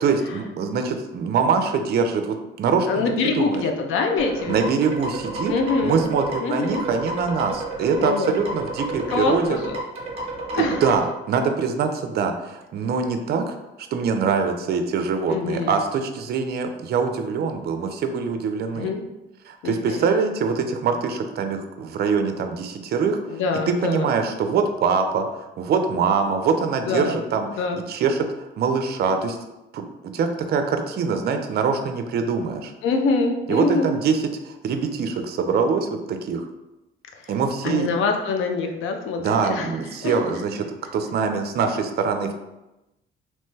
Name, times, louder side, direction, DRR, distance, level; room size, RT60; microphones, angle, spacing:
voice 1, 0.0-3.6 4.5-5.5 5.8-9.6 10.5-18.9 19.5-23.2 23.7-27.5 27.9-29.4 29.7-29.8 30.1-32.7 33.5-36.5 37.3-37.9 39.2-40.7 40.9-42.3, right 5 dB, 55° right, 6 dB, 0.4 m, -24 dB
voice 2, 2.9-4.7 5.5-6.0 6.4-6.8 8.0-8.4 9.1-9.7 10.6-10.8 15.3-15.8 18.7-19.0 19.6-20.1 23.3-24.1 26.9-27.2 27.6-27.8 32.8-33.9 37.2-37.3 37.6-39.7 40.0-40.2, left 4 dB, 85° left, 4 dB, 0.5 m, -25 dB
sound 1, 4.2-11.0, right 2 dB, 30° right, 0.8 m, -31 dB
3.0 x 2.1 x 3.1 m, 0.96 s
cardioid pair, 90°, 20 cm